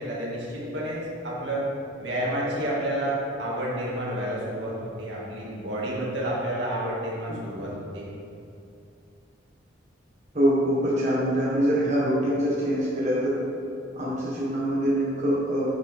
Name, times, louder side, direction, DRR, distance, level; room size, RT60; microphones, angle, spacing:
voice 1, 0.0-1.7 2.0-8.1, right 1 dB, 65° right, -5 dB, 2.3 m, -30 dB
voice 2, 10.3-13.4 14.0-15.7, equal, 35° right, -8 dB, 1.5 m, -24 dB
10.0 x 8.1 x 3.7 m, 2.5 s
head